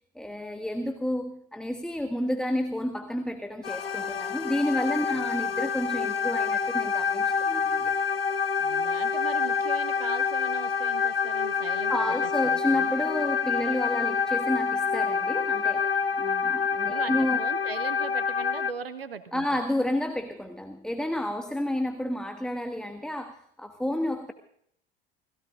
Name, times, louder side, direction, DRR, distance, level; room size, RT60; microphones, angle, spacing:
voice 1, 0.1-8.0 11.9-17.4 19.3-24.3, left 1 dB, ahead, 6 dB, 1.4 m, -30 dB
sound 1, 3.6-18.7, left 6 dB, 85° left, 0.6 m, -27 dB
voice 2, 8.6-12.9 16.9-19.6, right 6 dB, 80° right, 14 dB, 0.9 m, -39 dB
29.0 x 16.5 x 2.6 m, 0.68 s
figure-of-eight pair, 70°, 29 cm